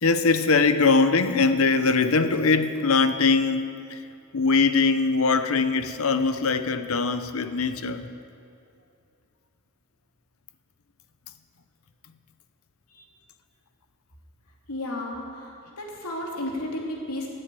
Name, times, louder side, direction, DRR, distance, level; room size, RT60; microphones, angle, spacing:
voice 1, 0.0-4.0 4.3-8.1, left 4 dB, 65° left, 0.8 m, -22 dB
voice 2, 14.7-17.3, left 1 dB, 85° left, 2.9 m, -33 dB
15.0 x 7.8 x 9.1 m
head